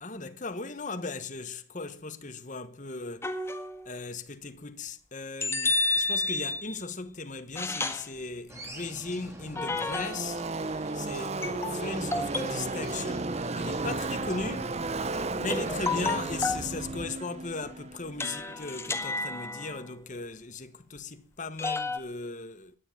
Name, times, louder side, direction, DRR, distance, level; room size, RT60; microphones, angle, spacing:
voice 1, 0.0-3.3 3.8-10.4 10.9-14.8 15.4-22.7, left 3 dB, 35° left, 1.2 m, -37 dB
sound 1, 3.2-3.9 5.4-6.8 7.6-8.1 9.6-10.4 11.4-12.7 15.5-16.7 18.2-19.9 21.6-22.0, left 3 dB, 10° left, 1.6 m, -31 dB
Car passing by / Race car auto racing, 8.3-8.4 8.6-19.2, right 3 dB, 30° right, 0.7 m, -34 dB
sound 2, 8.5-16.6, right 1 dB, 15° right, 2.7 m, -49 dB
13.5 x 10.0 x 9.2 m
head